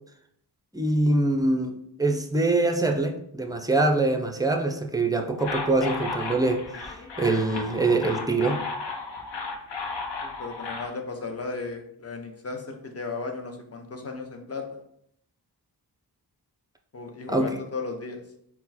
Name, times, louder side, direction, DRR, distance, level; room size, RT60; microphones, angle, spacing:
voice 1, 0.7-6.6 7.2-8.6 17.3-17.6, right 2 dB, 10° right, 4 dB, 0.4 m, -24 dB
sound 1, 5.4-10.9, left 4 dB, 90° left, 0.7 m, -34 dB
voice 2, 10.2-14.8 16.9-18.2, left 3 dB, 35° left, 4 dB, 0.7 m, -35 dB
4.4 x 2.1 x 4.1 m, 0.72 s
wide cardioid pair, 80°, 41 cm